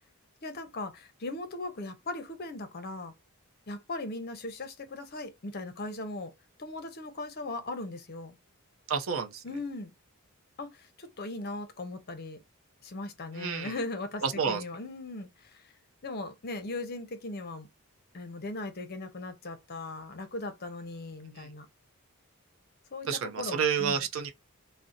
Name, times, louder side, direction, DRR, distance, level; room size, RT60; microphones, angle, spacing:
voice 1, 0.4-3.1 3.7-6.3 6.6-8.4 9.4-9.9 10.6-12.4 12.8-15.7 16.0-17.7 18.1-21.7 22.9-24.0, left 2 dB, 45° left, 0.6 m, -38 dB
voice 2, 8.9-9.4 13.3-13.7 14.2-14.6 21.2-21.5 23.1-24.3, right 6 dB, 60° right, 0.5 m, -30 dB
2.6 x 2.1 x 3.7 m
head